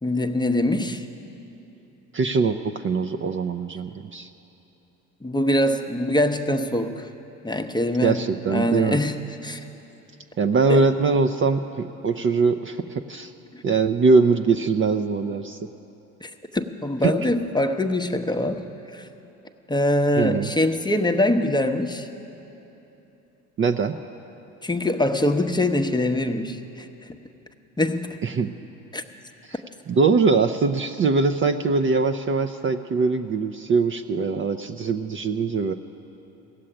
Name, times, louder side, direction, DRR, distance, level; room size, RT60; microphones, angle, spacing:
voice 1, 0.0-1.1 5.2-7.1 7.4-9.6 10.7-10.9 13.5-13.6 16.2-18.7 18.9-19.1 19.7-22.1 24.6-26.9 27.8-28.2 28.9-29.0, left 1 dB, 10° left, 6 dB, 0.8 m, -23 dB
voice 2, 2.1-4.3 8.0-9.0 10.4-13.3 13.6-15.6 20.2-20.5 23.6-24.0 28.2-28.5 29.9-35.7, right 4 dB, 30° right, 7 dB, 0.6 m, -22 dB
17.0 x 7.5 x 9.9 m, 3.0 s
hypercardioid pair, 60°, 41 cm